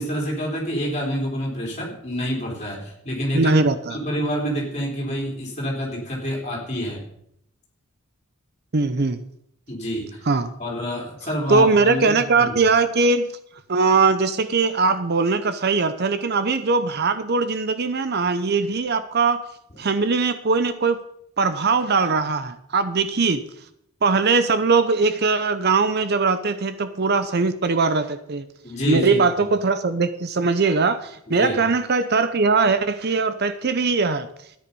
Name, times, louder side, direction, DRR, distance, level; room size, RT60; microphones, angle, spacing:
voice 1, 0.0-3.6 3.9-7.0 9.7-10.2 10.6-12.0 12.3-12.6 28.6-29.2 31.3-31.6, equal, 30° left, -2 dB, 3.8 m, -27 dB
voice 2, 3.3-4.0 8.7-9.2 10.3-10.5 11.5-13.3 13.7-19.4 19.8-21.0 21.4-23.4 24.0-28.5 28.9-34.3, right 4 dB, 45° right, 12 dB, 0.7 m, -20 dB
13.0 x 9.8 x 5.4 m, 0.74 s
head